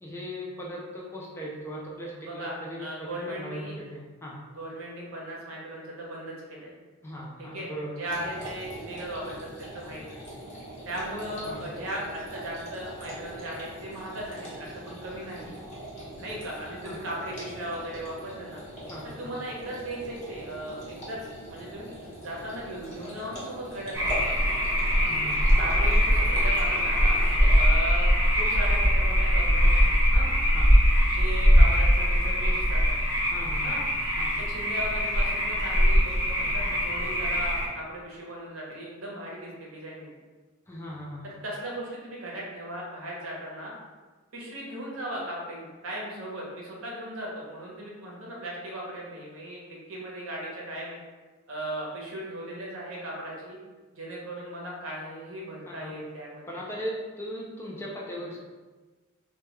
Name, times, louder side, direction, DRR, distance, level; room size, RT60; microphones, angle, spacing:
voice 1, 0.0-3.1 3.4-4.4 7.0-8.0 11.5-11.6 16.8-17.0 18.9-19.3 25.0-25.6 30.5-30.7 33.3-33.7 34.2-34.4 40.7-41.3 55.7-55.9 56.5-58.4, equal, 10° left, -4 dB, 0.3 m, -38 dB
voice 2, 2.2-3.7 4.5-6.7 7.4-7.7 8.0-10.2 10.9-15.5 16.2-18.6 19.2-21.2 21.5-24.2 25.6-27.2 27.5-30.3 31.1-32.9 33.6-33.8 34.4-40.1 41.2-43.7 44.3-51.0 51.5-53.6 53.9-56.5, right 1 dB, 75° right, -3 dB, 0.7 m, -37 dB
sound 1, 8.1-27.7, right 1 dB, 35° left, 0.9 m, -42 dB
sound 2, 23.9-37.7, equal, 15° right, 0.8 m, -22 dB
2.2 x 2.2 x 2.9 m, 1.3 s
head